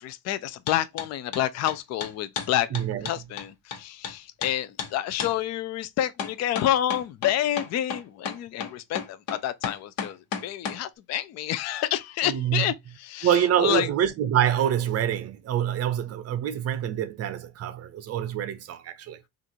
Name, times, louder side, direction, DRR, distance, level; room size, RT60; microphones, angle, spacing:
voice 1, 0.0-2.7 3.0-12.7 13.0-13.9, left 12 dB, 45° left, 0.4 m, -28 dB
sound 1, 0.7-1.1 1.3-4.1 4.4-4.5 4.8-4.9 5.2-5.3 6.2-10.8, left 6 dB, 60° left, 1.2 m, -33 dB
voice 2, 2.7-3.1 12.2-12.7 13.2-19.2, right 10 dB, 40° right, 0.6 m, -26 dB
6.1 x 2.5 x 2.7 m
cardioid pair, 180°, 40 cm